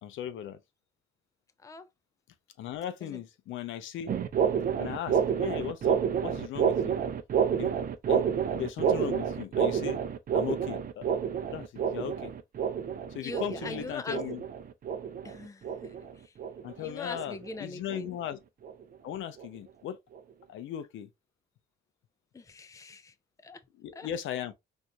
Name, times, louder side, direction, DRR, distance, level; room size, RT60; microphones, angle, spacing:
voice 1, 0.0-0.6 2.6-4.1 4.8-6.9 7.6-7.7 8.1-8.3 8.5-10.0 10.3-11.2 11.5-12.3 13.1-14.4 16.6-18.4 19.0-20.0 20.5-21.1 23.8-24.5, left 10 dB, 80° left, 0.6 m, -37 dB
sound 1, 4.1-16.8 17.1-17.5 17.9-18.2 18.6-18.8 19.4-19.5 20.1-20.2, right 7 dB, 45° right, 0.6 m, -29 dB
voice 2, 13.2-14.2 15.2-16.3 16.7-18.1 22.3-23.1 23.4-23.6 23.9-24.1, left 3 dB, 15° left, 0.5 m, -42 dB
4.5 x 2.6 x 2.2 m
cardioid pair, 90°, 20 cm